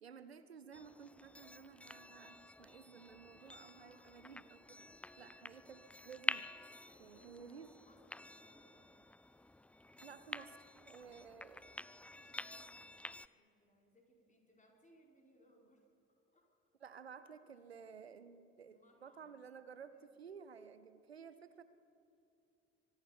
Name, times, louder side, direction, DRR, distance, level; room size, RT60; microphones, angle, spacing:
voice 1, 0.0-6.5 7.0-7.7 10.0-11.7 16.8-21.6, right 6 dB, 85° right, 13 dB, 0.7 m, -55 dB
sound 1, 0.7-13.3, left 2 dB, 5° left, 0.4 m, -48 dB
voice 2, 3.8-4.2 5.1-5.5 6.8-9.6 11.0-16.5 18.6-19.4 19.7-20.1, equal, 25° left, 0 dB, 5.4 m, -70 dB
24.0 x 11.5 x 9.8 m, 2.7 s
figure-of-eight pair, 50°, 30 cm